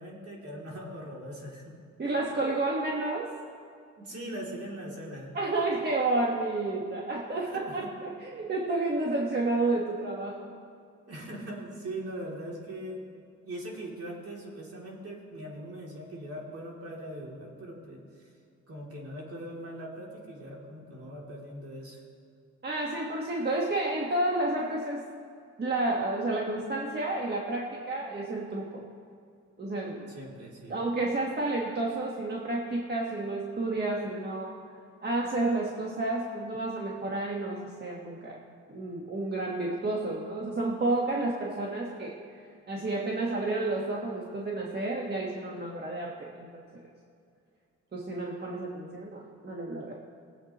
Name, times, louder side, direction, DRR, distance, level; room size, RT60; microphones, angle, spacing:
voice 1, 0.0-1.7 4.0-5.3 7.4-7.9 11.1-13.1 13.4-18.3 18.7-22.0 30.1-30.8, right 1 dB, 50° right, -3 dB, 3.0 m, -41 dB
voice 2, 2.0-3.3 5.3-10.5 22.6-25.0 25.6-28.8 29.6-30.1 30.7-34.5 35.0-38.4 38.7-42.1 42.7-46.8 47.9-49.9, right 2 dB, 35° right, -2 dB, 1.4 m, -30 dB
20.5 x 8.1 x 3.0 m, 2.3 s
cardioid pair, 90°, 30 cm